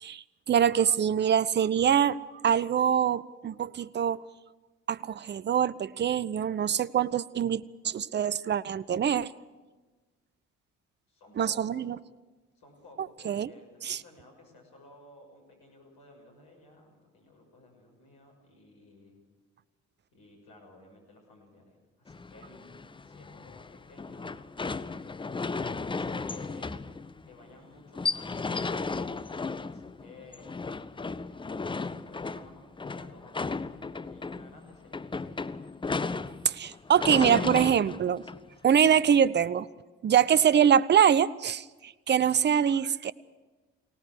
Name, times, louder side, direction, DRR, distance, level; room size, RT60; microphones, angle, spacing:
voice 1, 0.0-2.2 2.4-4.2 4.9-9.3 11.4-12.0 13.3-13.5 13.8-14.0 36.5-38.2 38.6-39.7 40.0-43.1, right 8 dB, 30° right, 19 dB, 0.6 m, -24 dB
voice 2, 11.1-11.9 12.5-19.2 20.1-24.4 24.7-26.8 27.2-28.9 29.6-30.6 31.0-35.6, left 2 dB, 65° left, 1 dB, 6.4 m, -55 dB
sound 1, 22.1-39.0, left 4 dB, 15° left, 0.6 m, -35 dB
24.0 x 18.0 x 6.3 m, 1.2 s
figure-of-eight pair, 45°, 38 cm